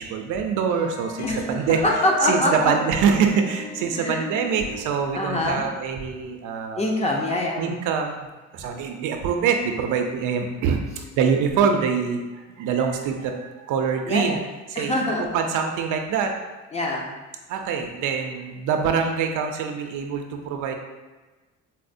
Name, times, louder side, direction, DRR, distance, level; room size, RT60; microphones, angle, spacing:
voice 1, 0.0-1.8 2.2-6.9 7.6-8.3 8.5-10.8 11.2-14.4 14.7-16.3 17.5-20.7, right 6 dB, 85° right, 4 dB, 0.5 m, -24 dB
sound 1, 0.7-5.9, left 1 dB, 55° left, 0.7 m, -36 dB
voice 2, 1.8-2.7 3.9-4.3 5.1-5.7 6.8-7.7 14.1-14.4 14.8-15.2 16.7-17.1, left 1 dB, 20° left, -1 dB, 0.6 m, -24 dB
4.1 x 2.0 x 2.5 m, 1.2 s
cardioid pair, 90°, 30 cm